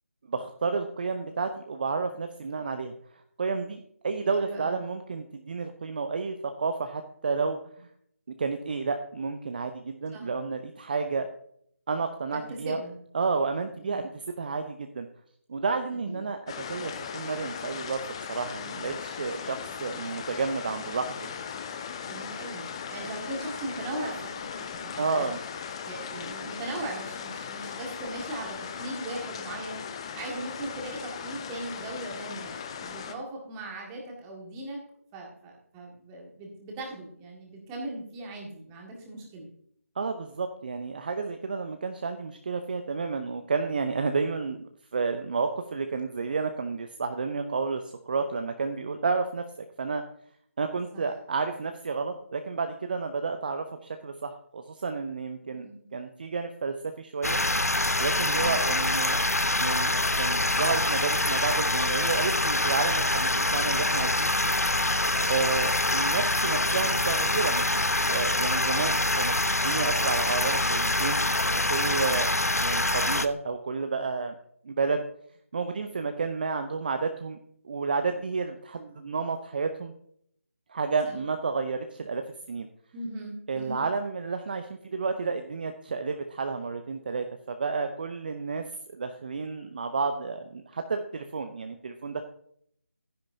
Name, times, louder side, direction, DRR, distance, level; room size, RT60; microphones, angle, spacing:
voice 1, 0.3-2.9 3.4-7.9 8.4-11.3 11.9-12.8 13.1-15.1 15.5-16.4 16.7-18.0 18.3-21.3 25.0-25.4 40.0-44.6 44.9-50.0 50.6-57.4 58.0-59.2 59.6-64.5 65.3-69.3 69.6-71.2 71.5-72.3 72.6-74.4 74.6-75.0 75.5-77.4 77.6-79.9 80.7-82.2 82.5-82.7 83.5-92.2, right 4 dB, 35° right, 7 dB, 0.7 m, -31 dB
voice 2, 4.4-4.8 10.1-10.3 12.3-13.0 13.8-14.1 15.9-16.3 22.1-25.3 25.8-29.8 30.1-34.8 35.1-39.5 50.9-51.1 55.5-55.9 58.3-58.7 81.0-81.2 82.9-83.8, right 1 dB, 15° right, 0 dB, 1.9 m, -39 dB
sound 1, 16.5-33.1, left 7 dB, 20° left, 0.6 m, -38 dB
sound 2, 57.2-73.3, left 2 dB, 85° left, 0.8 m, -25 dB
11.5 x 10.0 x 2.7 m, 0.66 s
figure-of-eight pair, 155°, 8 cm